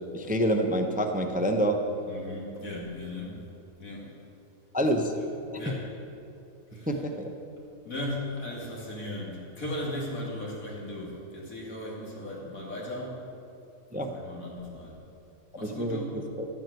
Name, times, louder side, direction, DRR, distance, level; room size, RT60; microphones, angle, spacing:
voice 1, 0.1-1.8 4.7-5.1 6.9-7.3 13.9-14.1 15.6-16.0 16.3-16.5, equal, 10° right, 5 dB, 0.6 m, -27 dB
voice 2, 2.0-3.4 3.8-4.1 5.3-5.8 6.7-6.9 7.8-13.2 13.9-15.0 15.5-16.2, left 1 dB, 85° left, -3 dB, 3.1 m, -37 dB
12.5 x 9.1 x 8.1 m, 2.8 s
omnidirectional pair, 1.4 m